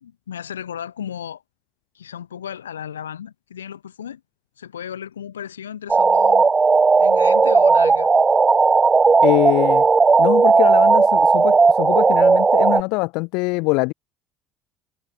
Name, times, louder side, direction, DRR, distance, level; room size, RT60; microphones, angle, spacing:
voice 1, 0.0-1.4 2.0-4.2 4.6-6.5 7.0-8.1, left 9 dB, 75° left, 1.7 m, -34 dB
sound 1, 5.9-12.8, right 4 dB, 25° right, 0.4 m, -15 dB
voice 2, 9.2-9.9 10.2-13.9, left 27 dB, 60° left, 1.3 m, -23 dB
figure-of-eight pair, 60°, 0 cm